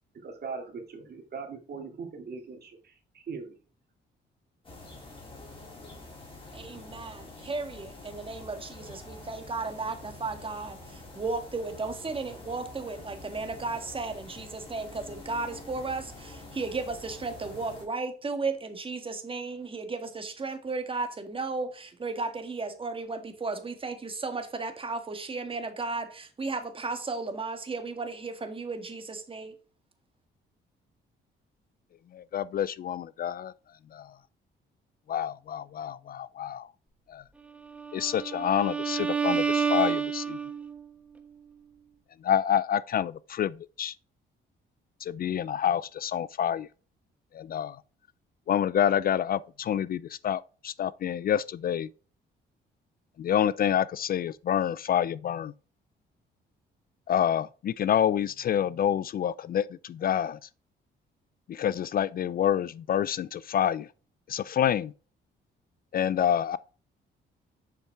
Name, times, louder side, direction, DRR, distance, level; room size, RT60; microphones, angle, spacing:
voice 1, 0.1-3.5, right 5 dB, 55° right, 2.4 m, -40 dB
sound 1, 4.6-17.9, left 2 dB, 25° left, 3.6 m, -46 dB
voice 2, 6.5-29.5, right 3 dB, 25° right, 1.7 m, -34 dB
voice 3, 32.1-33.5 33.9-34.1 35.1-36.7 37.1-37.2 37.9-40.4 42.2-43.9 45.0-46.7 47.3-47.8 48.5-51.9 53.2-55.5 57.1-60.4 61.5-63.9 64.3-64.9 65.9-66.6, left 9 dB, 50° left, 0.4 m, -28 dB
Bowed string instrument, 37.7-40.8, right 6 dB, 5° right, 1.2 m, -29 dB
7.3 x 5.6 x 4.6 m
cardioid pair, 90°, 20 cm